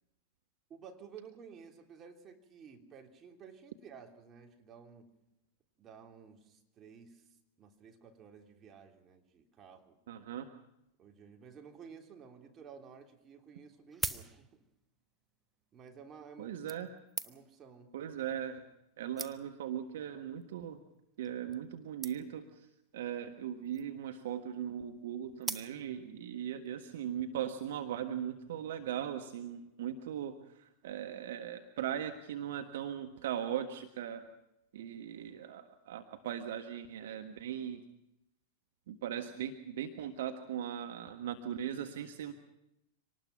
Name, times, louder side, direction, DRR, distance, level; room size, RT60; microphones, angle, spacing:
voice 1, 0.7-5.2 5.8-7.3 7.6-10.0 11.0-14.5 15.7-17.0 17.2-17.9, right 6 dB, 25° right, 2 dB, 3.4 m, -53 dB
voice 2, 10.1-10.5 16.4-16.9 17.9-18.6 19.0-20.8 21.2-22.7 22.9-34.2 34.7-37.8 38.9-42.3, right 9 dB, 55° right, 6 dB, 1.5 m, -39 dB
sound 1, 13.7-14.8 15.7-15.9 16.7-17.6 18.5-18.6 18.8-18.9 19.2-19.7 20.4-20.6 20.9-21.0 21.2-21.3 21.5-21.7 22.0-22.5 23.5-24.0 25.4-26.1 26.6-26.7, right 3 dB, 10° right, 1.2 m, -42 dB
25.5 x 19.5 x 6.0 m, 0.86 s
figure-of-eight pair, 90°, 0 cm